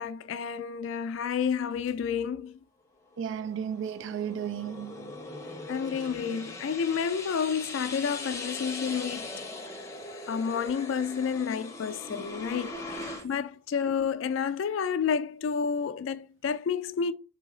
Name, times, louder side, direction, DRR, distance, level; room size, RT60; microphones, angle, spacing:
voice 1, 0.0-2.6 5.7-9.3 10.3-17.1, left 6 dB, 70° left, 0.3 m, -30 dB
sound 1, 3.1-13.2, left 3 dB, 15° left, 0.6 m, -40 dB
voice 2, 3.2-5.1 12.1-12.6 13.0-13.1, right 8 dB, 65° right, 0.3 m, -35 dB
3.9 x 2.8 x 4.8 m
head